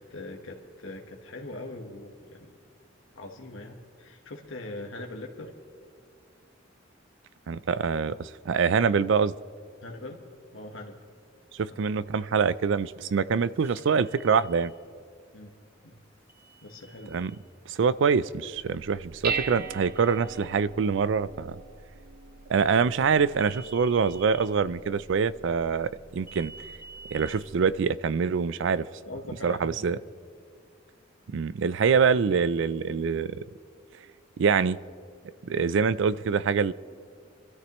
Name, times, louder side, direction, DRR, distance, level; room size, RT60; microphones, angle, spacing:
voice 1, 0.0-2.5 3.1-5.5 9.8-10.2 10.5-11.0 11.6-11.8 15.3-15.5 15.8-16.0 16.6-17.3 29.0-30.0, left 2 dB, 85° left, 1 dB, 1.3 m, -41 dB
voice 2, 7.5-9.3 11.5-14.7 17.1-17.3 17.7-21.6 22.5-26.5 27.1-28.9 29.4-30.0 31.3-33.4 34.4-34.8 35.4-36.7, right 6 dB, 70° right, 18 dB, 0.4 m, -25 dB
sound 1, 13.6-14.7 16.3-17.4 19.4-20.5 23.3-24.5 26.3-27.3, right 3 dB, 10° right, 1.1 m, -49 dB
Dishes pots and pans, 18.6-27.8, right 5 dB, 50° right, 0.7 m, -41 dB
24.5 x 13.0 x 3.0 m, 2.3 s
head